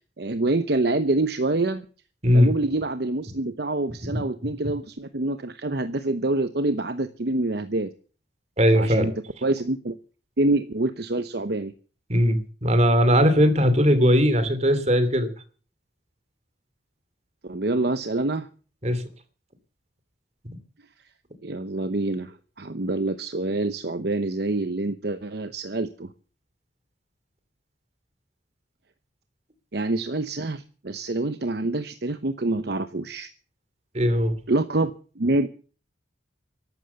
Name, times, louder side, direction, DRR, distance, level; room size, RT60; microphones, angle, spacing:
voice 1, 0.2-1.8 2.3-7.9 8.7-9.1 9.4-10.0 10.4-11.7 17.4-18.5 21.4-26.1 29.7-33.3 34.5-34.9 35.2-35.5, right 2 dB, 55° right, 10 dB, 0.9 m, -26 dB
voice 2, 8.6-9.1 12.1-15.3 18.8-19.0 33.9-34.3, equal, 35° right, 11 dB, 2.8 m, -19 dB
14.0 x 12.0 x 7.0 m, 0.40 s
head